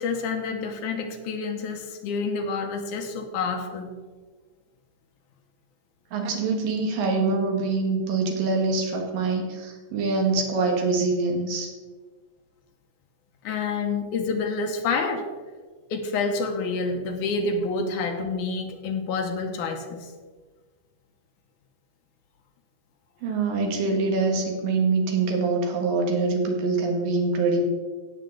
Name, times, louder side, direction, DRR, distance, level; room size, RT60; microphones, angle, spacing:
voice 1, 0.0-3.9 13.4-15.3 15.9-20.1, left 4 dB, 70° left, 5 dB, 2.4 m, -28 dB
voice 2, 6.1-11.7 23.2-27.6, right 3 dB, 85° right, 2 dB, 3.3 m, -24 dB
17.0 x 7.2 x 3.8 m, 1.4 s
omnidirectional pair, 3.8 m